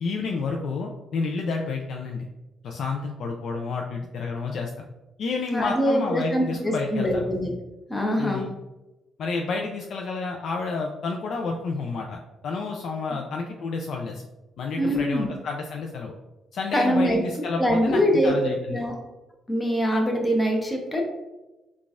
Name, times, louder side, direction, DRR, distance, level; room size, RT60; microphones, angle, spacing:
voice 1, 0.0-2.3 2.6-4.9 5.2-7.3 8.2-8.5 9.2-14.2 14.6-16.1 16.5-18.8, left 4 dB, 65° left, 1 dB, 0.3 m, -30 dB
voice 2, 5.5-7.5 7.9-8.5 14.8-15.3 16.7-17.2 17.6-18.9 19.5-21.0, equal, 15° left, 1 dB, 0.7 m, -23 dB
3.8 x 2.3 x 2.4 m, 1.0 s
cardioid pair, 90°, 0 cm